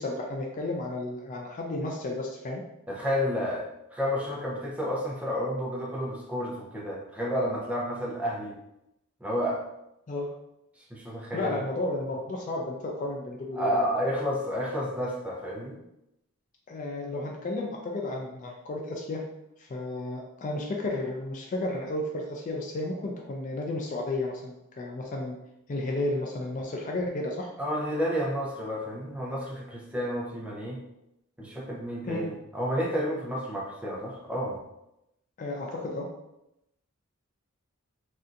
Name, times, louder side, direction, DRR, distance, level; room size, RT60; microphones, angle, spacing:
voice 1, 0.0-2.6 10.1-10.3 11.3-13.9 16.7-19.2 19.6-25.4 25.7-27.5 32.1-32.3 35.4-36.1, left 2 dB, 35° left, 0 dB, 0.3 m, -32 dB
voice 2, 2.9-8.5 9.2-9.6 10.9-11.7 13.6-15.8 27.6-30.8 31.4-34.6, equal, 5° right, -4 dB, 0.6 m, -30 dB
3.3 x 2.6 x 2.5 m, 0.87 s
head